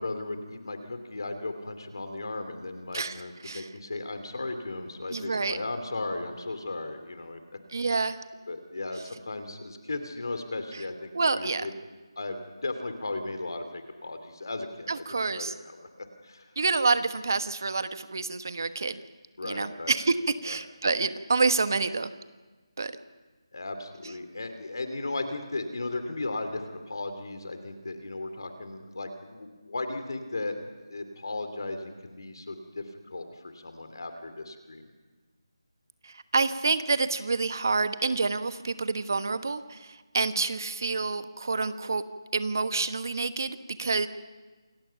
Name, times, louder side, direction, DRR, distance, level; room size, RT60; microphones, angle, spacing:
voice 1, 0.0-7.4 7.9-8.0 8.5-11.7 12.2-15.0 15.3-16.5 19.4-19.9 20.5-20.6 23.5-30.5 30.9-34.8, left 2 dB, 55° left, 8 dB, 2.8 m, -36 dB
voice 2, 2.9-3.7 5.1-5.6 7.7-8.2 10.7-10.8 11.1-11.7 14.9-15.5 16.6-19.0 19.4-20.2 20.4-22.1 22.8-22.9 36.0-42.0 42.3-44.1, right 4 dB, 45° right, 11 dB, 1.2 m, -28 dB
28.0 x 22.0 x 5.8 m, 1.3 s
figure-of-eight pair, 175°, 3 cm